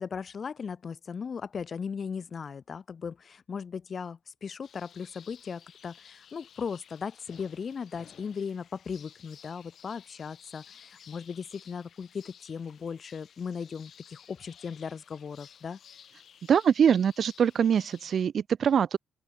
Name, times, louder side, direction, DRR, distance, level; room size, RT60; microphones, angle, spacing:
voice 1, 0.0-15.8, left 6 dB, 45° left, 3.4 m, -37 dB
sound 1, 4.6-18.2, left 8 dB, 60° left, 4.7 m, -55 dB
voice 2, 16.5-19.0, right 8 dB, 55° right, 0.6 m, -23 dB
open air
cardioid pair, 90°, 0 cm